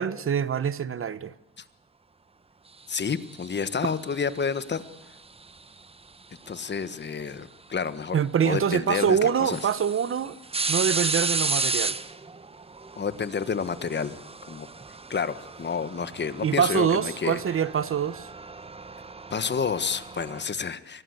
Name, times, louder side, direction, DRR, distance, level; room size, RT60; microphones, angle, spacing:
voice 1, 0.0-1.3 8.1-10.3 10.7-11.9 16.4-18.3, right 7 dB, 45° right, 1.1 m, -25 dB
voice 2, 2.9-4.8 6.5-9.6 11.0-11.1 12.9-14.2 14.5-14.7 15.1-17.4 19.3-21.0, left 6 dB, 35° left, 1.5 m, -30 dB
sound 1, 3.2-4.6 6.5-6.6 8.2-8.3 8.7-8.8 9.3-20.4, right 3 dB, 20° right, 1.1 m, -33 dB
24.0 x 18.5 x 8.1 m
cardioid pair, 90°, 30 cm